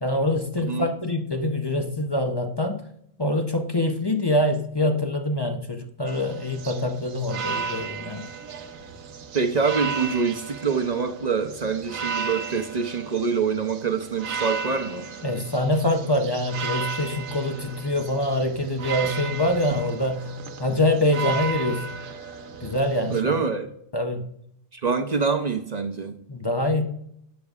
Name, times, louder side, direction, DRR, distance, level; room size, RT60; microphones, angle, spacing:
voice 1, 0.0-2.9 3.2-8.3 15.2-20.3 20.6-21.9 22.6-23.4 23.9-24.3 26.3-26.9, left 1 dB, 35° left, 5 dB, 0.4 m, -25 dB
voice 2, 0.6-0.9 9.3-15.1 23.0-23.7 24.7-26.2, right 5 dB, 45° right, 6 dB, 0.6 m, -25 dB
sound 1, 6.1-23.2, right 6 dB, 75° right, 1.2 m, -34 dB
12.0 x 8.3 x 2.4 m, 0.73 s
omnidirectional pair, 1.4 m